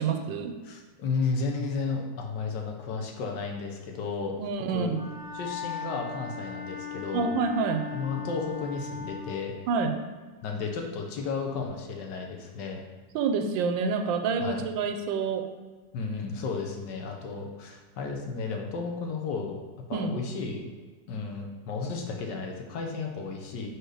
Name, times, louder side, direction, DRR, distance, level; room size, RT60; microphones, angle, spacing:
voice 1, 0.0-0.5 4.4-5.0 7.1-7.9 9.7-10.0 13.1-15.5 19.9-20.1, right 5 dB, 90° right, 6 dB, 1.3 m, -27 dB
voice 2, 0.6-4.3 4.7-4.9 5.3-7.3 7.9-9.5 10.4-12.8 14.4-14.6 15.9-19.6 19.9-20.6 21.1-23.7, left 4 dB, 70° left, 2 dB, 1.4 m, -33 dB
Wind instrument woodwind instrument, 4.9-9.3, left 6 dB, ahead, 0.9 m, -38 dB
4.6 x 4.6 x 4.9 m, 1.4 s
omnidirectional pair, 2.0 m